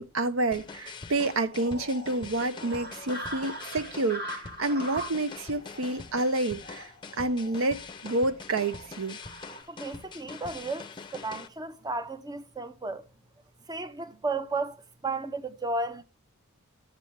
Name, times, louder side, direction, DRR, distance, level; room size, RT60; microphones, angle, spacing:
voice 1, 0.0-6.9 7.2-9.2, right 2 dB, 70° right, 0.7 m, -29 dB
sound 1, 0.5-11.5, left 4 dB, 20° left, 0.6 m, -44 dB
sound 2, 1.5-9.6, equal, 50° right, 2.3 m, -42 dB
voice 2, 9.7-13.0 13.7-16.0, right 3 dB, 20° right, 0.6 m, -34 dB
12.0 x 7.5 x 3.2 m
head